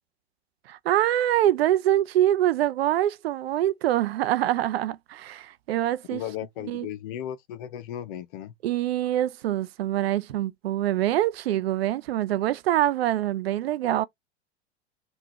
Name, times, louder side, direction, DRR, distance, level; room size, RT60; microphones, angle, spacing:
voice 1, 0.7-6.2 6.7-6.9 8.6-14.0, right 13 dB, 65° right, 0.5 m, -24 dB
voice 2, 6.1-8.5, left 11 dB, 50° left, 0.7 m, -35 dB
3.8 x 2.3 x 2.9 m
figure-of-eight pair, 95°, 34 cm